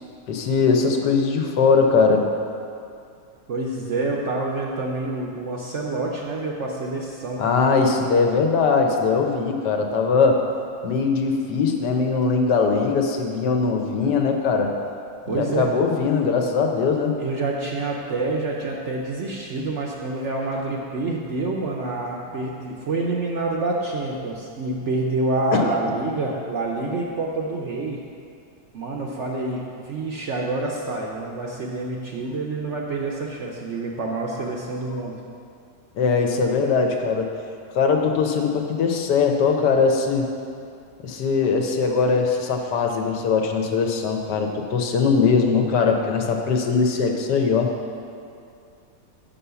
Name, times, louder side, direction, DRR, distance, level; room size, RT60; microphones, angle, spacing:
voice 1, 0.3-2.3 7.4-10.4 10.8-14.7 15.3-17.2 25.5-25.8 35.9-37.3 37.7-40.3 41.0-47.7, left 5 dB, 75° left, 3 dB, 1.3 m, -21 dB
voice 2, 3.5-7.4 15.3-15.7 17.2-28.0 28.7-35.2, right 2 dB, 60° right, -2 dB, 0.8 m, -27 dB
6.2 x 5.6 x 6.8 m, 2.5 s
omnidirectional pair, 1.8 m